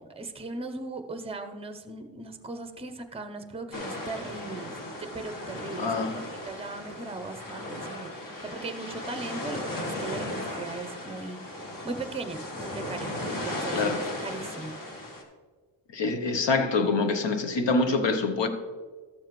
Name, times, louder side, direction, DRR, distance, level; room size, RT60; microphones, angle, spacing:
voice 1, 0.0-5.9 6.2-11.4 11.8-13.9 14.2-14.8, right 3 dB, 10° right, 0.7 m, -38 dB
sound 1, 3.7-15.2, left 1 dB, 45° left, 1.6 m, -36 dB
voice 2, 5.8-6.2 13.7-14.0 15.9-18.5, left 3 dB, 65° left, 1.0 m, -25 dB
13.5 x 7.1 x 3.1 m
wide cardioid pair, 100°, 47 cm